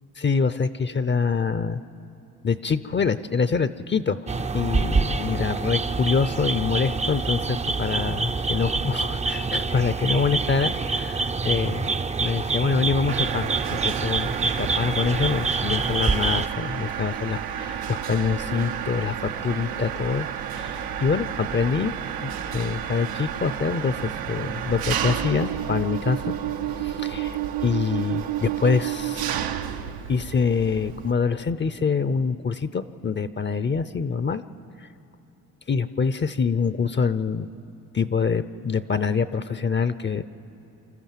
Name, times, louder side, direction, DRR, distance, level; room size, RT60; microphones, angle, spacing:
voice 1, 0.2-1.8 2.4-11.9 12.2-20.3 20.5-21.9 22.2-26.4 26.8-29.6 30.1-34.4 34.8-34.9 35.7-37.5 37.9-40.2, left 5 dB, 30° left, 14 dB, 0.6 m, -25 dB
sound 1, 4.3-16.5, right 4 dB, 20° right, 0.5 m, -26 dB
Mechanisms, 13.1-31.1, right 10 dB, 85° right, 0.8 m, -31 dB
25.5 x 14.0 x 7.4 m, 3.0 s
cardioid pair, 65°, 36 cm